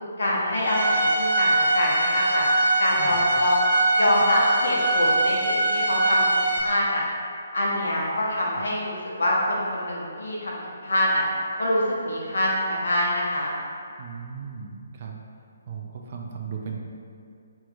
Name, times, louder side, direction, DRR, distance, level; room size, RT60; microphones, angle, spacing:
voice 1, 0.2-2.4 2.8-3.6 4.0-6.2 6.5-7.0 7.5-11.2 11.6-13.5, left 1 dB, 65° left, -4 dB, 0.6 m, -25 dB
Bowed string instrument, 0.6-6.6, right 2 dB, 75° right, 0.7 m, -22 dB
voice 2, 14.0-15.2 15.7-16.8, right 6 dB, 40° right, 0 dB, 0.3 m, -36 dB
2.8 x 2.5 x 3.8 m, 2.4 s
figure-of-eight pair, 135°, 0 cm